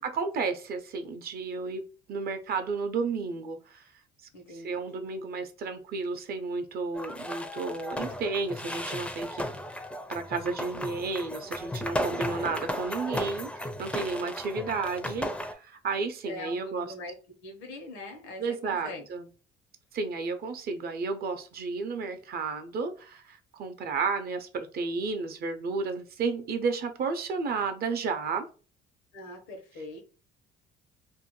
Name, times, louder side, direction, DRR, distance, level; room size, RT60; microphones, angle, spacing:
voice 1, 0.0-1.8 2.1-3.9 4.5-9.5 10.1-16.9 18.4-19.3 19.9-28.5, right 4 dB, 55° right, 7 dB, 0.6 m, -32 dB
voice 2, 4.3-5.0 16.3-17.2 17.4-19.0 29.1-30.0, left 2 dB, 85° left, 3 dB, 0.9 m, -42 dB
sound 1, 6.9-15.5, left 1 dB, 5° left, 0.4 m, -35 dB
2.6 x 2.1 x 3.0 m, 0.35 s
cardioid pair, 95°, 20 cm